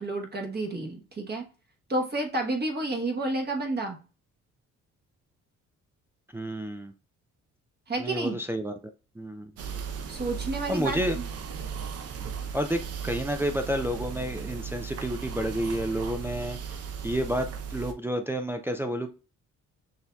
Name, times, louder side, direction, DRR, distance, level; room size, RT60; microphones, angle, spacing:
voice 1, 0.0-1.4 1.9-4.0 7.9-8.4 10.1-11.2, right 2 dB, 35° right, 1.1 m, -30 dB
voice 2, 6.3-6.9 8.0-8.8 9.2-9.5 10.7-11.2 12.5-19.1, equal, 10° right, 0.4 m, -30 dB
sound 1, 9.6-17.9, right 7 dB, 55° right, 0.6 m, -36 dB
6.3 x 2.7 x 2.2 m
cardioid pair, 90°, 30 cm